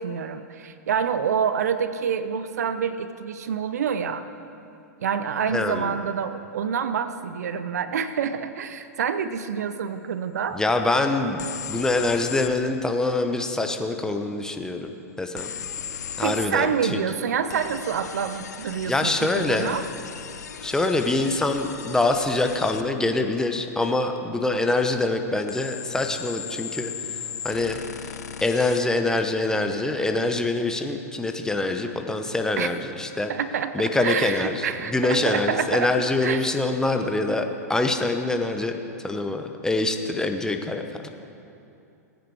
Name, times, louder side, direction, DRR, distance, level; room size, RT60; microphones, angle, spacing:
voice 1, 0.0-4.3 5.0-10.6 16.2-19.8 32.6-32.7 33.3-35.9 36.2-36.5, right 7 dB, 70° right, 12 dB, 0.7 m, -27 dB
voice 2, 5.5-5.9 10.5-14.9 15.2-15.5 16.2-17.0 18.9-19.7 20.6-26.9 27.4-27.8 28.4-33.3 33.7-34.6 34.9-38.7 39.0-41.1, left 2 dB, 5° left, 5 dB, 1.0 m, -25 dB
sound 1, 11.4-12.6 15.4-16.5 17.5-22.9 25.5-28.8, left 8 dB, 75° left, 0.6 m, -37 dB
20.0 x 9.3 x 4.8 m, 2.7 s
hypercardioid pair, 100°, 9 cm